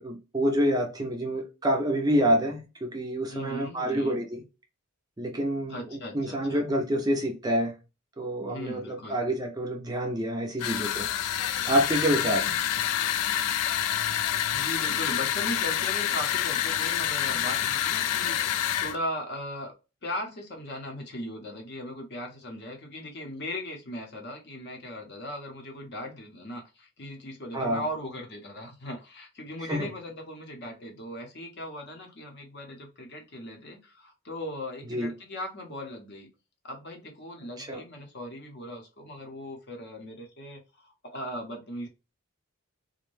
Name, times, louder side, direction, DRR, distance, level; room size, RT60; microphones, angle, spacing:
voice 1, 0.0-4.4 5.2-7.7 8.2-12.5 27.5-27.8 29.6-29.9 34.9-35.1 37.6-37.8, equal, 15° right, 0.4 m, -27 dB
voice 2, 3.3-4.2 5.7-6.6 8.5-9.2 14.5-19.7 20.0-36.3 36.6-41.9, left 1 dB, 50° left, 0.7 m, -38 dB
sound 1, 10.6-19.0, left 10 dB, 85° left, 0.3 m, -27 dB
2.5 x 2.1 x 3.0 m
head